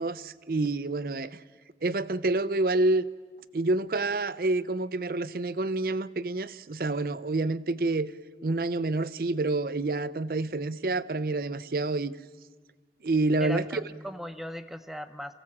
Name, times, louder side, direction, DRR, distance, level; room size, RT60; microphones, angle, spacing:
voice 1, 0.0-1.4 1.8-3.1 3.5-8.1 8.4-12.2 13.0-13.8, right 2 dB, 55° right, 0.6 m, -28 dB
voice 2, 13.4-15.3, equal, ahead, 0.6 m, -38 dB
26.5 x 16.5 x 7.4 m
head